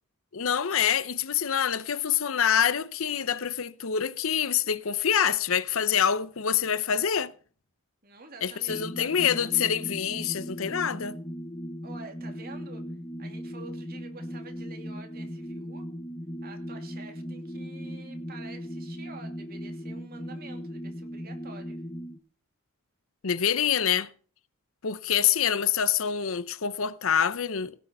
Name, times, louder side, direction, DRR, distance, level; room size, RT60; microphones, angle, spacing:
voice 1, 0.3-7.3 8.4-11.2 23.2-24.1 24.8-27.8, left 8 dB, 65° left, 0.7 m, -26 dB
voice 2, 8.0-9.5 11.8-12.8 13.2-15.9 16.4-21.8, right 3 dB, 45° right, 2.5 m, -48 dB
sound 1, 8.7-22.2, equal, 15° left, 0.8 m, -38 dB
17.0 x 6.5 x 5.4 m
head